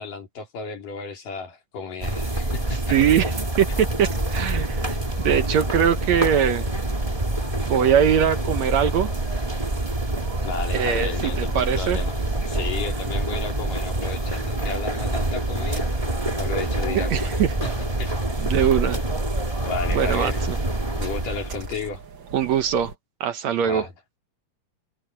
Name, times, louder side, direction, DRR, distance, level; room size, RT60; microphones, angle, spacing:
voice 1, 0.0-3.0 10.4-12.2 12.5-15.9 16.4-18.1 19.7-20.4 21.0-22.0 23.6-23.9, left 5 dB, 80° left, 5.3 m, -33 dB
sound 1, 2.0-21.8, right 1 dB, 10° right, 2.0 m, -26 dB
voice 2, 2.9-3.3 3.6-6.7 7.7-9.1 10.7-12.0 17.1-17.5 18.4-19.0 19.9-20.6 22.3-22.9 23.2-23.9, right 8 dB, 65° right, 2.0 m, -22 dB
sound 2, 4.0-23.0, right 4 dB, 45° right, 2.2 m, -40 dB
omnidirectional pair, 3.7 m